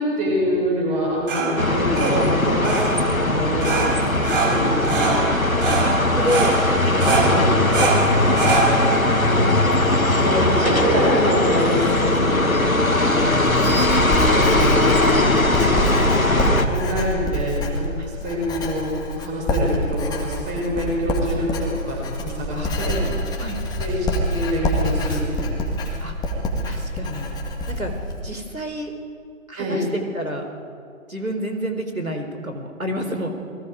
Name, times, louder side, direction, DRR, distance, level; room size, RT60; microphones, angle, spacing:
voice 1, 0.0-5.1 7.1-7.7 9.1-9.5 10.0-13.3 13.8-13.9 14.2-15.9 16.2-16.3 16.6-23.0 23.8-25.8 29.6-29.8, equal, 20° right, -2 dB, 6.6 m, -26 dB
sound 1, 0.9-10.7, right 4 dB, 40° right, 4.8 m, -25 dB
sound 2, 1.6-16.7, left 2 dB, 90° left, 2.1 m, -19 dB
voice 2, 4.5-5.1 5.7-6.6 7.0-7.4 7.8-9.2 10.0-10.7 13.7-13.9 15.7-15.8 18.0-18.1 22.5-23.6 26.0-27.3 27.7-27.9 28.2-28.9 29.5-30.5 31.1-33.3, equal, 90° right, 5 dB, 4.1 m, -30 dB
Writing, 12.8-28.2, equal, 10° left, 2.1 m, -26 dB
28.5 x 21.5 x 5.1 m, 2.3 s
figure-of-eight pair, 135°, 41 cm